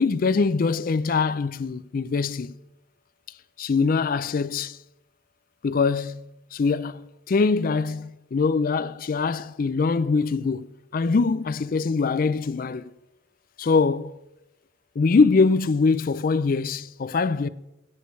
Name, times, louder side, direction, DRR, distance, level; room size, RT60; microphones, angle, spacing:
voice 1, 0.0-2.6 3.6-4.8 5.6-6.2 6.5-12.9 13.6-14.1 15.0-17.5, left 4 dB, 45° left, 0.4 m, -23 dB
16.5 x 9.5 x 3.2 m
head